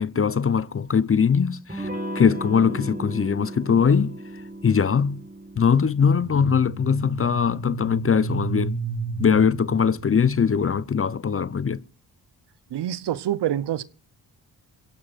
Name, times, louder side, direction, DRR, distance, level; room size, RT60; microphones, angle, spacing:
voice 1, 0.0-1.9 2.1-4.1 4.6-5.2 5.6-8.8 9.2-11.8, left 6 dB, 30° left, 0.7 m, -21 dB
Electric guitar / Strum, 1.7-7.1, right 1 dB, 20° right, 3.9 m, -36 dB
sound 1, 6.2-10.9, right 4 dB, 85° right, 6.1 m, -33 dB
voice 2, 12.7-13.8, right 11 dB, 70° right, 0.8 m, -26 dB
27.0 x 16.5 x 2.5 m
supercardioid pair, 50°, 43 cm